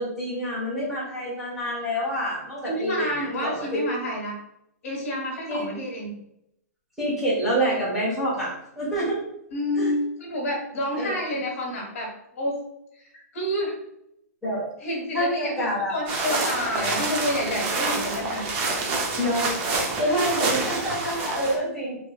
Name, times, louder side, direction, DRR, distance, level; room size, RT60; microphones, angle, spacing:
voice 1, 0.0-3.8 5.5-5.7 7.0-9.2 9.7-9.9 10.9-11.1 14.4-14.6 15.1-16.0 19.2-19.6 20.0-22.0, equal, ahead, -10 dB, 1.2 m, -27 dB
voice 2, 2.7-4.3 4.8-6.1 9.5-12.6 13.3-13.8 14.8-15.6 15.9-18.4 20.1-20.3, left 1 dB, 60° left, -1 dB, 1.3 m, -29 dB
sound 1, 16.1-21.6, right 3 dB, 25° right, 0.5 m, -27 dB
3.1 x 3.0 x 2.3 m, 0.78 s
hypercardioid pair, 165°, 9 cm